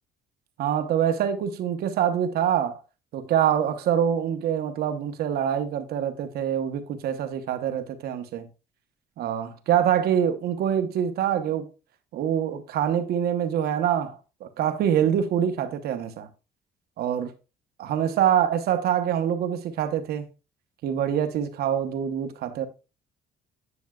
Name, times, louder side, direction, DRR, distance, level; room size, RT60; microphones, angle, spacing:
voice 1, 0.6-2.8 3.1-8.5 9.2-11.7 12.1-16.3 17.0-17.3 17.8-20.3 20.8-22.7, right 9 dB, 70° right, 1.0 m, -25 dB
9.6 x 6.0 x 2.3 m
cardioid pair, 110°, 17 cm